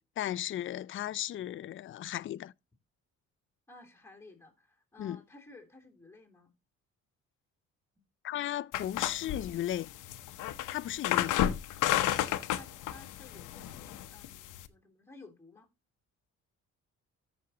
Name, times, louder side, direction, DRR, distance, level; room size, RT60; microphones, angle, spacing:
voice 1, 0.0-2.5 5.0-5.2 8.2-9.9 10.7-11.4, left 12 dB, 45° left, 0.4 m, -35 dB
voice 2, 3.7-6.5 11.9-15.7, left 3 dB, 10° left, 3.1 m, -55 dB
sound 1, 8.7-14.7, left 12 dB, 85° left, 0.8 m, -32 dB
14.0 x 6.2 x 2.9 m
cardioid pair, 90°, 30 cm